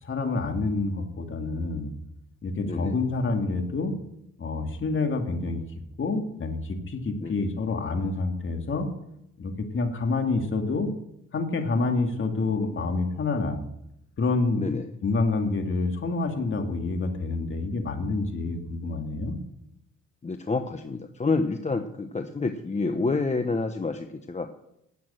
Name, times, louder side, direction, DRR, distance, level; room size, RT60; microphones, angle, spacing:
voice 1, 0.0-1.9 2.4-4.0 4.4-5.6 6.0-8.9 9.4-10.9 11.3-13.6 14.2-14.6 15.0-19.4, left 3 dB, 40° left, 5 dB, 2.3 m, -27 dB
voice 2, 14.6-14.9 20.2-24.5, left 3 dB, 25° left, 7 dB, 0.9 m, -28 dB
11.0 x 8.4 x 8.8 m, 0.81 s
cardioid pair, 90°, 30 cm